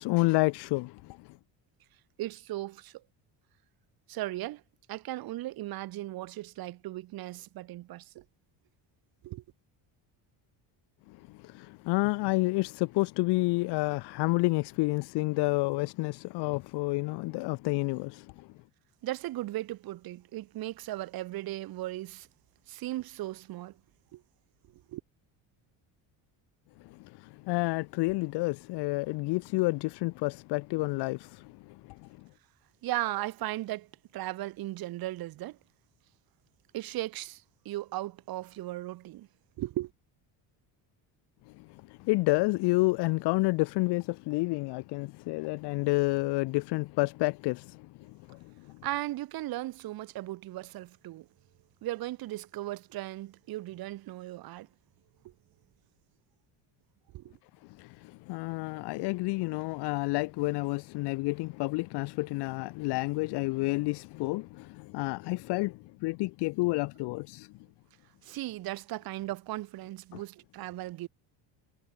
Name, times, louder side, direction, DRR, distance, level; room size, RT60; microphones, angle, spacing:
voice 1, 0.0-1.4 11.1-18.5 26.8-32.1 41.6-48.8 57.8-67.5 70.1-70.2, left 23 dB, 65° left, 0.6 m, -30 dB
voice 2, 2.2-3.0 4.1-4.6 4.9-8.2 9.2-9.4 19.0-22.3 22.7-23.8 24.1-24.2 24.7-25.0 32.8-35.6 36.7-39.3 39.6-39.9 48.8-51.3 51.8-54.7 55.2-55.3 57.1-57.3 68.2-71.1, right 16 dB, 55° right, 1.6 m, -37 dB
cardioid pair, 165°, 43 cm